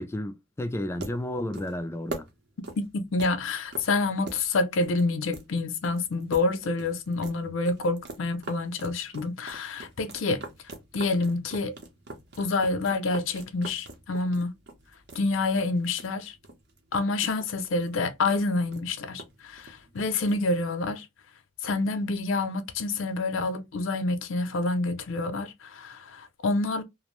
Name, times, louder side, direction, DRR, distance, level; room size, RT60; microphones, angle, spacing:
voice 1, 0.0-2.3 7.5-7.6, left 1 dB, 15° left, 0.3 m, -32 dB
sound 1, 0.7-20.6, right 2 dB, 55° right, 0.7 m, -45 dB
voice 2, 3.1-10.4 10.9-11.8 12.4-14.5 15.1-16.3 16.9-21.1 21.6-26.8, left 3 dB, 70° left, 0.5 m, -28 dB
2.5 x 2.0 x 2.9 m
head